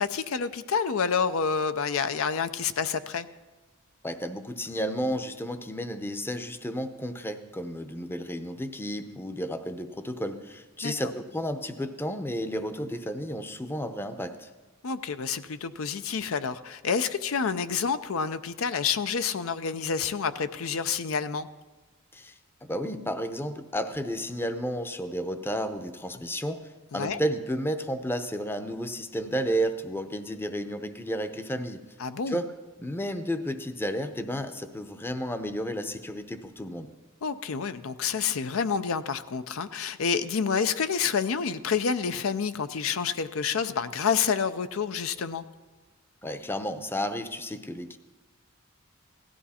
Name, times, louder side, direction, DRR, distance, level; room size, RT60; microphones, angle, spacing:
voice 1, 0.0-3.3 10.8-10.9 14.8-21.5 26.9-27.2 32.0-32.4 37.2-45.4, left 6 dB, 80° left, 11 dB, 0.5 m, -28 dB
voice 2, 4.0-14.5 22.1-26.6 26.9-31.8 32.3-32.5 32.8-36.9 46.2-48.0, equal, 10° left, 9 dB, 0.6 m, -32 dB
16.5 x 13.0 x 4.2 m, 1.2 s
head